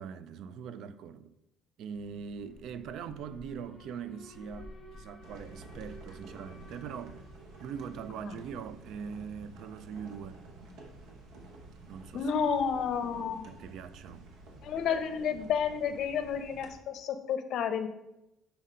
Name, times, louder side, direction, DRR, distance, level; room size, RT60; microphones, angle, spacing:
voice 1, 0.0-1.3 1.8-7.2 7.6-10.4 11.9-12.3 13.5-14.3, right 7 dB, 60° right, 0.3 m, -42 dB
Alarm, 1.9-14.0, equal, 25° left, 1.6 m, -54 dB
sound 1, 5.2-16.7, right 2 dB, 80° right, 1.0 m, -51 dB
voice 2, 12.1-13.5 14.6-17.9, left 7 dB, 55° left, 0.6 m, -31 dB
5.6 x 3.7 x 5.4 m
cardioid pair, 140°, 0 cm